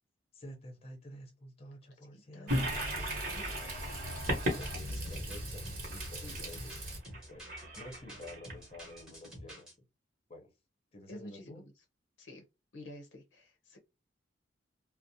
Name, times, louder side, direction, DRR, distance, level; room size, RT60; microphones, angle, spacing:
voice 1, 0.3-3.7 4.3-6.8 7.3-7.4 7.8-9.7 10.3-10.5 10.9-11.6, left 1 dB, 35° left, 0.7 m, -50 dB
voice 2, 2.3-2.7 4.1-4.4 6.2-6.4 11.1-11.6 12.2-12.4 12.7-13.8, left 1 dB, 75° left, 0.6 m, -49 dB
Toilet flush, 2.5-9.0, equal, 50° right, 1.0 m, -36 dB
sound 1, 4.3-9.7, equal, 5° right, 0.9 m, -50 dB
2.4 x 2.0 x 2.7 m
head